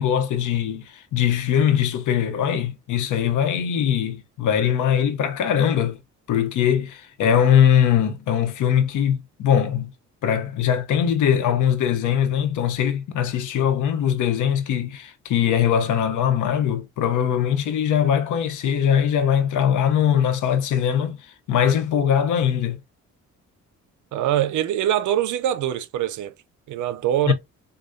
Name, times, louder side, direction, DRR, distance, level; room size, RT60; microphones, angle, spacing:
voice 1, 0.0-6.0 6.3-9.9 10.2-22.8 27.3-27.4, left 9 dB, 80° left, 1.0 m, -21 dB
voice 2, 24.1-26.3 26.7-27.3, right 11 dB, 75° right, 0.7 m, -23 dB
6.5 x 2.3 x 2.7 m
cardioid pair, 90°, 30 cm